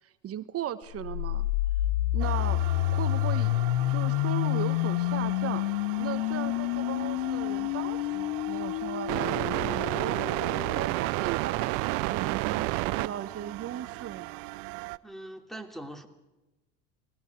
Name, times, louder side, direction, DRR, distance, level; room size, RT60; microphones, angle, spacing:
voice 1, 0.0-1.5 2.1-3.6 3.9-5.6 6.0-10.2 10.7-14.4, right 11 dB, 40° right, 11 dB, 1.3 m, -37 dB
sound 1, 0.9-10.9, left 17 dB, 75° left, 0.8 m, -29 dB
sound 2, 2.2-15.0, right 21 dB, 65° right, 0.7 m, -33 dB
voice 2, 15.0-16.1, right 1 dB, ahead, 5 dB, 3.2 m, -41 dB
28.5 x 21.0 x 4.8 m, 1.0 s
supercardioid pair, 100°, 37 cm